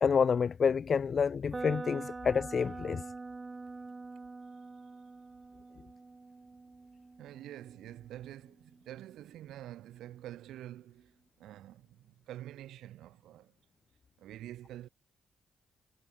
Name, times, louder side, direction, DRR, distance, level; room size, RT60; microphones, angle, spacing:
voice 1, 0.0-3.0, left 6 dB, 55° left, 0.4 m, -28 dB
sound 1, 1.5-9.4, right 3 dB, 30° right, 2.7 m, -45 dB
voice 2, 7.2-13.5 14.2-14.9, right 13 dB, 80° right, 1.8 m, -47 dB
supercardioid pair, 50°, 0 cm